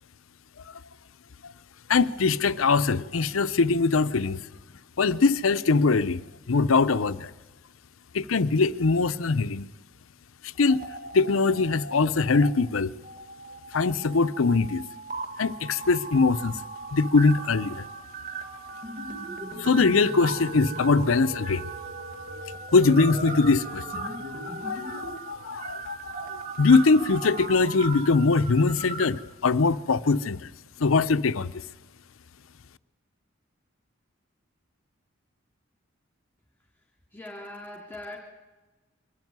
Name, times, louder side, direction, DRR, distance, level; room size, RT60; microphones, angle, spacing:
voice 1, 1.9-4.4 5.0-6.2 6.5-7.3 8.1-9.7 10.4-10.8 11.1-12.9 13.7-14.8 15.4-16.6 16.9-17.8 19.6-21.7 22.7-24.2 24.4-30.5 30.8-31.6, left 4 dB, 85° left, 0.7 m, -22 dB
sound 1, 10.5-11.9 12.2-12.5 13.0-29.0, right 3 dB, 45° right, 1.8 m, -38 dB
voice 2, 37.1-38.2, left 1 dB, 10° left, 2.9 m, -40 dB
23.5 x 12.0 x 9.5 m
head